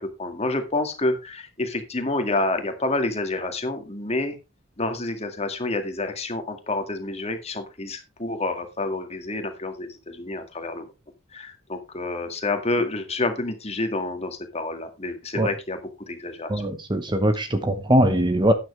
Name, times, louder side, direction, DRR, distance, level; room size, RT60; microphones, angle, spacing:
voice 1, 0.0-4.4 4.8-10.9 11.3-16.7, left 2 dB, 30° left, 2.0 m, -28 dB
voice 2, 16.5-18.5, equal, 20° right, 1.0 m, -21 dB
12.0 x 9.4 x 3.3 m
head